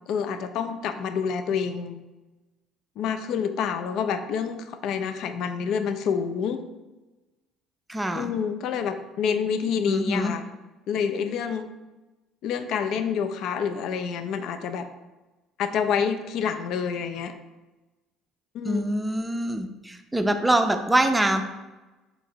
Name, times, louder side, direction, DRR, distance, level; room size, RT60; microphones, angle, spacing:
voice 1, 0.1-2.0 3.0-6.6 8.1-10.4 10.9-11.7 12.4-14.9 15.6-17.3 18.5-18.8, left 7 dB, 65° left, 9 dB, 0.3 m, -28 dB
voice 2, 7.9-8.3 9.9-10.3 18.6-21.4, right 1 dB, 15° right, 7 dB, 0.5 m, -24 dB
3.8 x 2.7 x 4.3 m, 1.1 s
hypercardioid pair, 60°, 0 cm